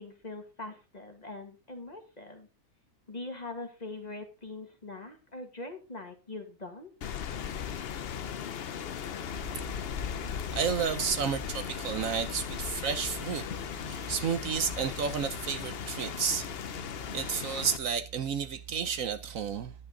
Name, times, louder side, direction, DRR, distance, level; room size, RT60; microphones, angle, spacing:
voice 1, 0.0-2.5 3.1-6.9, left 2 dB, 30° left, 1.8 m, -42 dB
Rain, 7.0-17.8, left 8 dB, 55° left, 0.7 m, -37 dB
voice 2, 10.5-16.5 16.9-19.7, right 6 dB, 65° right, 1.1 m, -32 dB
11.0 x 8.6 x 3.8 m
omnidirectional pair, 1.6 m